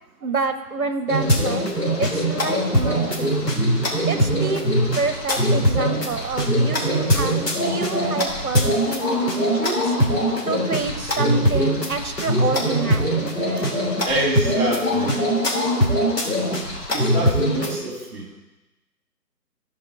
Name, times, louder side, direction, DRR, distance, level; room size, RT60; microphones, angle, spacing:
voice 1, 0.2-3.3 4.1-10.0 10.5-13.7, right 4 dB, 60° right, 9 dB, 1.1 m, -28 dB
sound 1, 1.1-17.7, equal, 75° left, 2.9 m, -22 dB
voice 2, 14.0-15.2 16.9-18.4, right 1 dB, 35° right, -1 dB, 3.0 m, -26 dB
14.5 x 5.0 x 4.6 m, 1.0 s
figure-of-eight pair, 155°, 49 cm